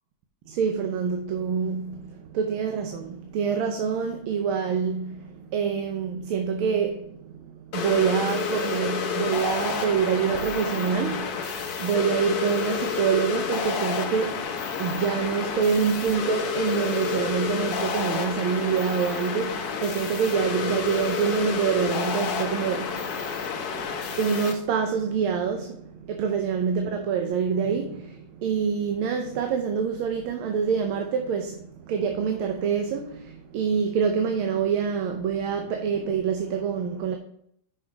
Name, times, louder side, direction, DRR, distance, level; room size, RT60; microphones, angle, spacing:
voice 1, 0.5-37.2, right 6 dB, 80° right, 1.6 m, -26 dB
sound 1, 7.7-24.5, left 6 dB, 60° left, 1.1 m, -30 dB
5.9 x 5.7 x 4.6 m
omnidirectional pair, 2.3 m